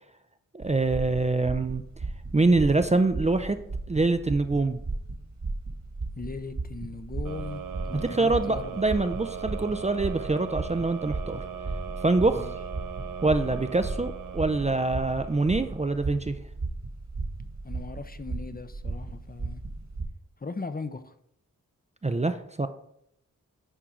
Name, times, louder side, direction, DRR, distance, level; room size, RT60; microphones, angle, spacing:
voice 1, 0.5-1.8 2.3-3.6 3.9-4.8 7.9-11.4 12.0-12.6 13.2-16.4 22.0-22.7, right 3 dB, 20° right, 9 dB, 0.5 m, -25 dB
sound 1, 0.6-20.0, right 3 dB, 55° right, 1.7 m, -36 dB
voice 2, 6.2-8.8 12.4-12.5 17.6-19.6 20.4-21.1, left 4 dB, 25° left, 10 dB, 0.6 m, -38 dB
sound 2, 7.2-16.2, right 7 dB, 70° right, 0.7 m, -39 dB
10.0 x 4.5 x 3.8 m, 0.74 s
cardioid pair, 50°, 34 cm